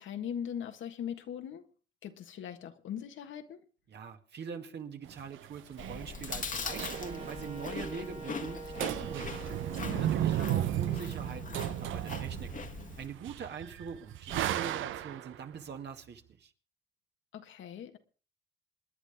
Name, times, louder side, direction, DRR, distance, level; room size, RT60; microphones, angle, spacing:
voice 1, 0.0-1.7 2.0-3.6 9.8-10.1 17.3-18.0, left 9 dB, 75° left, 1.7 m, -40 dB
voice 2, 3.9-9.3 10.0-12.5 13.0-16.5, right 6 dB, 60° right, 2.2 m, -43 dB
sound 1, 5.1-7.6 7.8-7.9 8.2-8.5 8.8-15.4, right 12 dB, 80° right, 0.7 m, -35 dB
Chewing mastication, 5.8-13.1, left 5 dB, 40° left, 1.5 m, -41 dB
Wind instrument woodwind instrument, 6.7-12.5, right 5 dB, 30° right, 2.1 m, -46 dB
28.0 x 10.0 x 3.6 m
cardioid pair, 90°, 20 cm